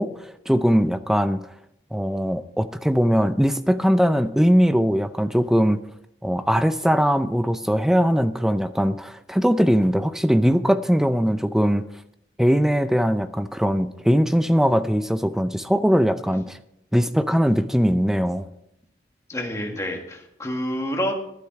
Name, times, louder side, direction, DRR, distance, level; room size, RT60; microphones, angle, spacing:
voice 1, 0.0-1.4 1.9-5.8 6.2-11.8 12.4-16.6 16.9-18.5, equal, 5° right, 12 dB, 0.4 m, -20 dB
voice 2, 19.3-21.1, equal, 15° left, 1 dB, 1.7 m, -28 dB
12.0 x 9.8 x 4.8 m, 0.78 s
head